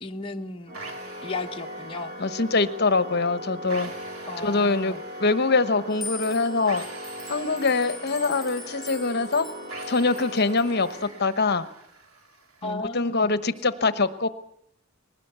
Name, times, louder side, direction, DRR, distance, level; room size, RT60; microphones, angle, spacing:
voice 1, 0.0-0.8 1.2-2.1 4.3-5.0 12.6-13.3, left 2 dB, 25° left, 2 dB, 0.9 m, -34 dB
Organ, 0.7-11.6, equal, 45° right, 1.9 m, -39 dB
sound 1, 0.7-12.7, right 3 dB, 85° right, 3.2 m, -46 dB
voice 2, 2.2-3.9 4.4-4.9 5.2-6.8 7.3-9.5 9.9-11.7 12.6-14.3, left 3 dB, 50° left, 13 dB, 1.1 m, -24 dB
sound 2, 5.9-10.9, left 4 dB, ahead, 3.0 m, -42 dB
20.5 x 18.5 x 8.1 m, 0.74 s
head